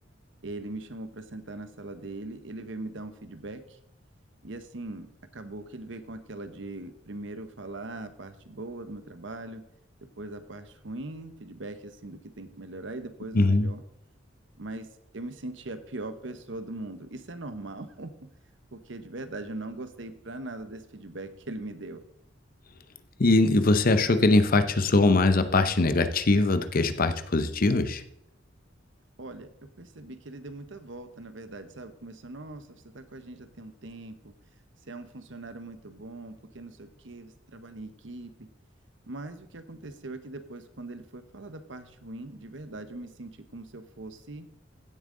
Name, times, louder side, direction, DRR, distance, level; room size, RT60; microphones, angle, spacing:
voice 1, 0.4-3.8 4.4-9.6 10.2-13.8 14.6-14.9 15.1-18.1 18.7-22.0 29.2-34.3 34.9-38.5 39.1-44.5, right 2 dB, 70° right, 10 dB, 1.0 m, -40 dB
voice 2, 13.3-13.7 23.2-28.0, left 2 dB, 50° left, 10 dB, 0.8 m, -22 dB
16.0 x 7.4 x 3.9 m, 0.79 s
head